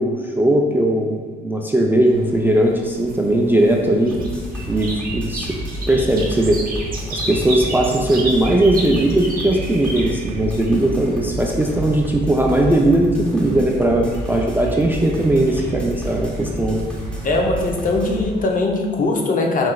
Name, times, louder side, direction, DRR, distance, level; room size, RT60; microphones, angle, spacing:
voice 1, 0.0-4.2 4.7-5.5 5.9-6.6 7.1-16.9, right 1 dB, 10° right, 0 dB, 0.3 m, -18 dB
sound 1, 2.1-18.6, right 2 dB, 45° right, 0.8 m, -35 dB
sound 2, 4.1-18.2, equal, 5° left, 0.7 m, -30 dB
voice 2, 17.2-19.7, left 2 dB, 40° left, 1 dB, 0.6 m, -20 dB
4.5 x 3.2 x 2.2 m, 1.5 s
cardioid pair, 90°, 20 cm